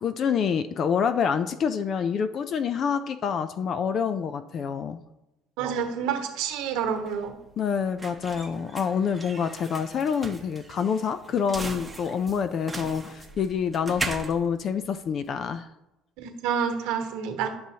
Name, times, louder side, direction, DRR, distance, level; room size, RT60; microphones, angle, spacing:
voice 1, 0.0-5.0 7.6-15.7, left 7 dB, 50° left, 11 dB, 0.4 m, -27 dB
voice 2, 5.6-7.3 16.2-17.5, right 7 dB, 85° right, 4 dB, 1.1 m, -28 dB
sound 1, 6.5-15.5, right 2 dB, 10° right, 0.8 m, -39 dB
10.0 x 6.2 x 2.8 m, 0.94 s
cardioid pair, 115°, 0 cm